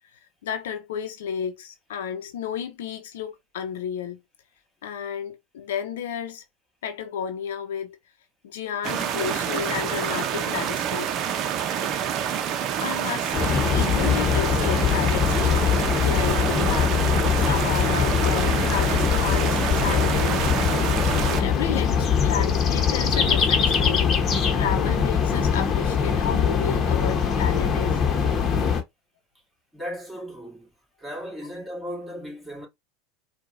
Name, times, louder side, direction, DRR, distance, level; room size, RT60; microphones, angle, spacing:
voice 1, 0.4-4.2 4.8-6.4 6.8-8.0 8.4-11.3 11.7-11.9 12.8-17.0 17.4-20.6 21.4-24.2 24.5-28.0 31.4-31.5, left 8 dB, 80° left, 0.8 m, -32 dB
sound 1, 8.8-21.4, right 9 dB, 50° right, 0.7 m, -27 dB
sound 2, 13.3-28.8, left 6 dB, 35° left, 1.1 m, -22 dB
voice 2, 29.7-30.7 31.0-32.7, equal, 10° right, 2.4 m, -36 dB
4.7 x 2.4 x 2.6 m
hypercardioid pair, 90°, 0 cm